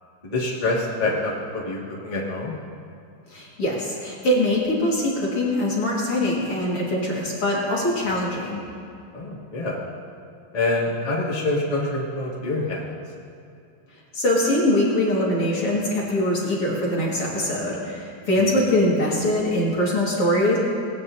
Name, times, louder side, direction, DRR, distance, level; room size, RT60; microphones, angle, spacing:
voice 1, 0.3-2.5 9.1-9.8 10.5-12.9, left 2 dB, 25° left, -7 dB, 0.7 m, -26 dB
voice 2, 3.3-8.6 14.1-20.6, left 1 dB, 45° left, -5 dB, 2.1 m, -23 dB
20.0 x 16.0 x 2.8 m, 2.5 s
omnidirectional pair, 5.1 m